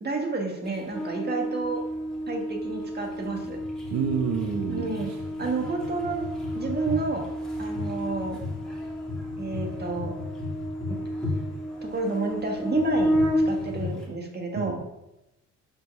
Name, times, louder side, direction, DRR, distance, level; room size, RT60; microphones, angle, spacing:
voice 1, 0.0-1.8 2.3-3.6 4.5-5.1 5.4-6.3 6.5-7.3 7.6-8.4 9.4-10.1 10.9-11.0 11.8-13.1 13.5-14.8, right 3 dB, 35° right, 2 dB, 1.8 m, -30 dB
sound 1, 0.6-14.1, equal, ahead, 2.5 m, -31 dB
voice 2, 3.9-4.9 14.5-14.8, right 7 dB, 65° right, 6 dB, 0.7 m, -28 dB
5.8 x 4.7 x 5.4 m, 0.92 s
cardioid pair, 90°, 30 cm